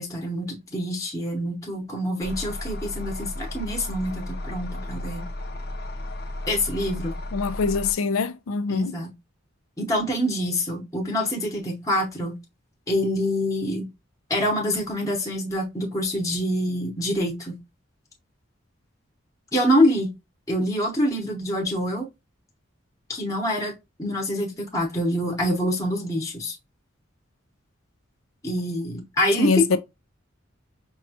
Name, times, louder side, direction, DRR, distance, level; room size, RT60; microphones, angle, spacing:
voice 1, 0.0-5.3 6.5-7.2 8.7-9.1 9.8-12.4 12.9-13.9 14.3-17.6 19.5-20.1 20.5-22.1 23.1-23.7 24.0-26.6 28.4-29.8, equal, 15° left, 0.9 m, -25 dB
sound 1, 2.2-7.9, left 1 dB, 50° left, 0.7 m, -34 dB
voice 2, 7.3-9.0 29.4-29.8, left 4 dB, 90° left, 0.4 m, -24 dB
5.2 x 2.3 x 2.7 m
head